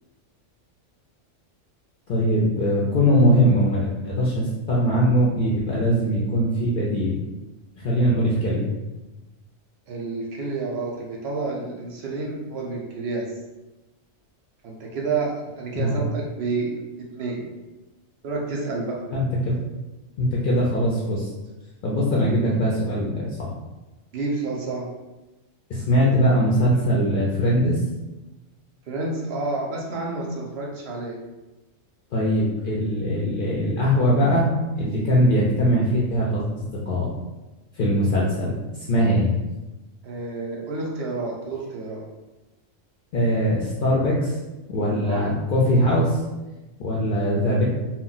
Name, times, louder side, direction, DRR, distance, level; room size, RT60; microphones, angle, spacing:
voice 1, 2.1-7.2 7.8-8.7 15.7-16.0 19.1-19.6 20.2-21.3 21.8-23.5 25.7-27.8 32.1-37.1 37.8-39.3 43.1-44.4 44.7-46.2 46.8-47.6, equal, 65° left, -5 dB, 0.5 m, -21 dB
voice 2, 9.9-13.3 14.6-16.7 17.2-17.5 18.2-19.0 24.1-24.9 28.9-31.2 40.0-42.0 45.0-45.2, right 3 dB, 65° right, -2 dB, 0.7 m, -29 dB
2.2 x 2.1 x 3.8 m, 1.1 s
omnidirectional pair, 1.3 m